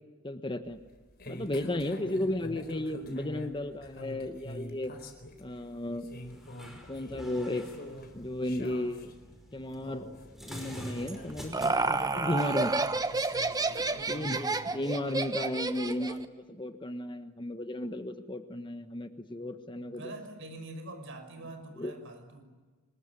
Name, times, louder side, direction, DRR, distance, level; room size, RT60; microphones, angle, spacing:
voice 1, 0.2-0.8 1.3-4.9 5.4-6.1 6.9-7.6 8.1-9.1 9.5-10.1 10.4-12.7 14.1-20.1 21.8-21.9, left 1 dB, 20° left, 8 dB, 1.3 m, -34 dB
sound 1, 0.6-14.2, left 1 dB, 45° left, 4.3 m, -46 dB
voice 2, 1.8-2.3 13.9-14.7 19.9-22.4, right 1 dB, 60° right, 7 dB, 5.9 m, -45 dB
sound 2, 6.1-14.1, equal, ahead, 5.4 m, -49 dB
Laughter, 11.1-16.2, right 3 dB, 15° right, 1.2 m, -30 dB
25.5 x 22.5 x 9.9 m, 1.3 s
head